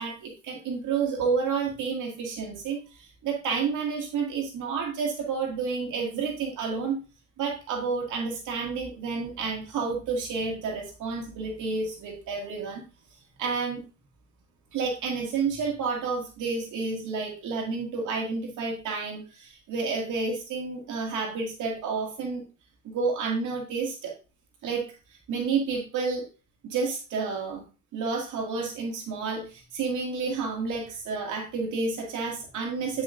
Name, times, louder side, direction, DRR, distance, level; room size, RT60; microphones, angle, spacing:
voice 1, 0.0-7.0 7.4-12.8 13.4-13.8 14.7-22.4 22.8-24.1 24.6-24.9 25.3-26.2 26.6-27.6 27.9-33.0, right 4 dB, 80° right, 0 dB, 2.1 m, -30 dB
9.2 x 5.4 x 2.5 m, 0.31 s
cardioid pair, 90°, 30 cm